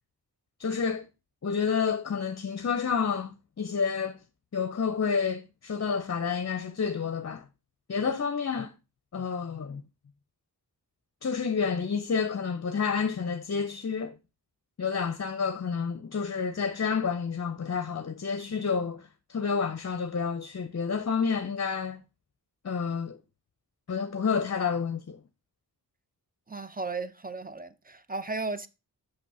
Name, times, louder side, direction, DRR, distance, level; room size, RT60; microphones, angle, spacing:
voice 1, 0.6-1.1 1.4-4.2 4.5-7.5 7.9-8.7 9.1-9.8 11.2-14.2 14.8-22.0 22.6-23.2 23.9-25.2, left 6 dB, 40° left, 0.7 m, -29 dB
voice 2, 26.5-28.7, right 3 dB, 20° right, 0.8 m, -35 dB
6.2 x 6.1 x 5.4 m
wide cardioid pair, 60°, 40 cm